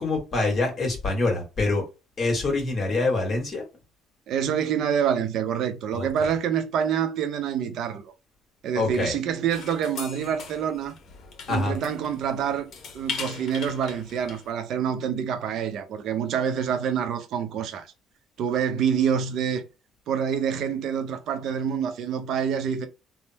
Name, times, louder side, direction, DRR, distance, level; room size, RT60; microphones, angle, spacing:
voice 1, 0.0-1.9 2.2-3.6 5.9-6.3 8.7-9.1 11.5-11.7, left 3 dB, 40° left, 1.5 m, -25 dB
voice 2, 4.3-8.1 8.6-10.9 11.5-17.9 18.4-19.6 20.1-22.9, right 8 dB, 65° right, 0.6 m, -27 dB
sound 1, 9.5-14.5, left 5 dB, 55° left, 0.8 m, -39 dB
3.4 x 2.0 x 2.7 m
cardioid pair, 110°, 0 cm